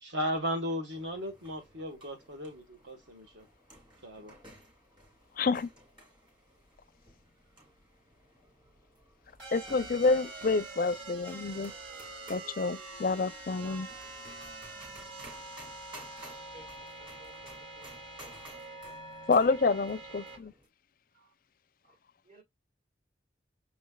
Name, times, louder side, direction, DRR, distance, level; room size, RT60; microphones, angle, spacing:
voice 1, 0.0-3.5 4.0-4.3, equal, 65° right, 1.5 m, -36 dB
sound 1, 0.9-20.7, right 1 dB, 25° right, 1.8 m, -55 dB
voice 2, 5.4-5.7 9.5-11.7 12.3-13.9 19.3-20.5, left 4 dB, 45° left, 0.4 m, -28 dB
sound 2, 9.4-20.4, right 2 dB, 85° right, 2.6 m, -45 dB
voice 3, 17.0-17.9 18.8-19.0 19.6-19.8 20.1-20.5 21.1-21.3 21.8-22.0 22.2-22.4, right 1 dB, 45° right, 1.4 m, -56 dB
6.0 x 3.2 x 2.3 m
head